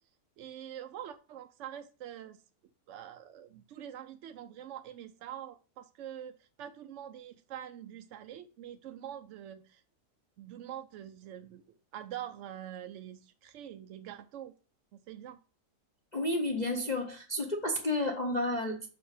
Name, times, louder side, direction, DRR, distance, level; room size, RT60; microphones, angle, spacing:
voice 1, 0.4-2.4 2.9-9.8 10.4-14.5 14.9-15.4, right 10 dB, 65° right, 0.7 m, -45 dB
voice 2, 16.1-18.9, left 1 dB, 35° left, 0.8 m, -31 dB
6.0 x 5.1 x 4.9 m
omnidirectional pair, 1.6 m